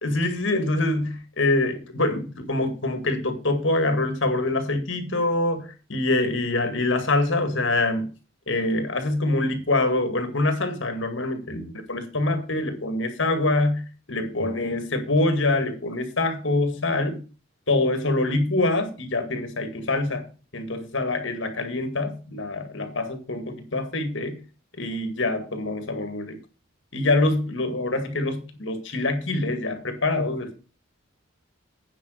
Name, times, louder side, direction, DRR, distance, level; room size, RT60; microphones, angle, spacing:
voice 1, 0.0-8.1 8.5-17.2 17.7-20.3 20.5-24.4 24.8-26.4 26.9-30.6, left 2 dB, 60° left, 1.9 m, -25 dB
9.1 x 4.9 x 7.8 m
head